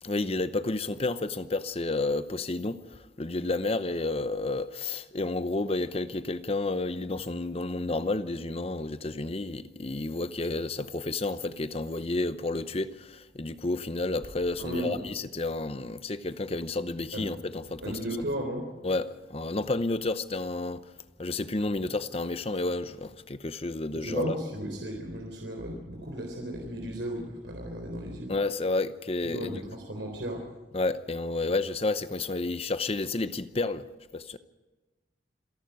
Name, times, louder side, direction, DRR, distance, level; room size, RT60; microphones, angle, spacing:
voice 1, 0.0-18.0 18.8-20.9 21.2-24.3 28.3-29.6 30.7-33.9 34.1-34.4, left 2 dB, 30° left, 0.8 m, -31 dB
voice 2, 14.6-15.0 17.1-17.3 17.8-18.7 23.9-28.3 29.2-30.4, right 1 dB, 80° right, 3.9 m, -35 dB
27.5 x 11.5 x 9.3 m
head